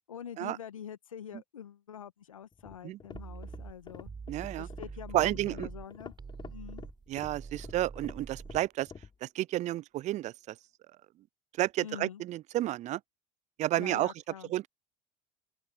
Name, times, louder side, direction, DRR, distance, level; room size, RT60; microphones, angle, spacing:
voice 1, 0.1-4.1 4.6-6.1 6.5-6.8 11.8-12.2 13.8-14.5, left 9 dB, 85° left, 1.5 m, -45 dB
sound 1, 2.5-9.2, left 5 dB, 30° left, 5.2 m, -49 dB
sound 2, 3.1-5.9 6.2-8.6, right 5 dB, 25° right, 6.2 m, -45 dB
voice 2, 4.3-4.7 5.1-5.7 7.1-8.9 9.2-10.5 11.6-13.0 13.6-14.1 14.5-14.7, right 15 dB, 45° right, 0.5 m, -31 dB
open air
hypercardioid pair, 70°, 17 cm